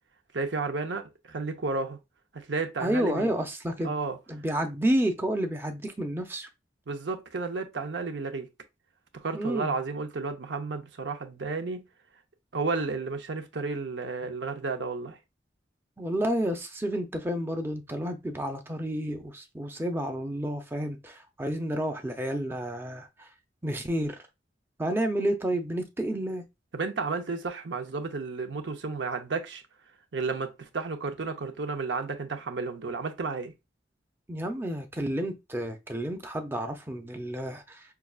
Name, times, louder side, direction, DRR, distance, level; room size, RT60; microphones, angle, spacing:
voice 1, 0.3-2.0 2.3-3.3 3.8-4.2 6.9-8.5 9.1-11.8 12.5-15.2 26.7-29.6 30.1-33.5, right 4 dB, 75° right, 0.7 m, -32 dB
voice 2, 2.8-3.9 4.3-6.5 9.3-9.7 16.0-23.3 23.6-24.2 24.8-26.4 34.3-37.8, right 1 dB, 10° right, 0.6 m, -30 dB
5.7 x 2.4 x 2.4 m
head